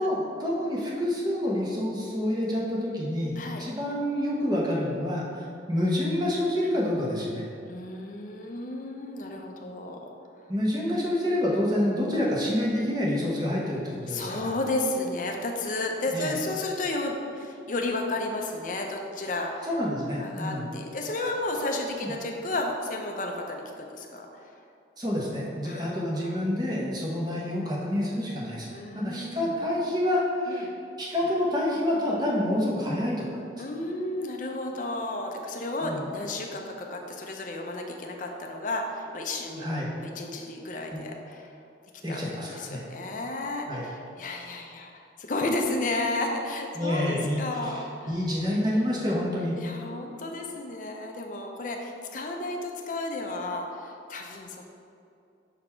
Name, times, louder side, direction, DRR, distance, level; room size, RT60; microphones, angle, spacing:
voice 1, 0.0-7.4 10.5-14.5 16.1-16.3 19.6-20.7 22.0-22.1 25.0-30.7 31.0-33.3 35.8-36.0 39.5-39.9 40.9-41.0 42.0-42.8 43.7-43.8 46.7-49.6, left 1 dB, 20° right, -4 dB, 1.0 m, -28 dB
voice 2, 7.7-10.1 12.1-12.3 14.1-19.7 20.2-24.5 25.6-26.4 28.7-29.6 30.5-30.6 33.6-39.7 40.0-41.5 42.1-42.2 42.5-48.1 49.6-54.6, left 2 dB, 45° left, 2 dB, 0.6 m, -32 dB
5.8 x 4.2 x 4.4 m, 2.5 s
head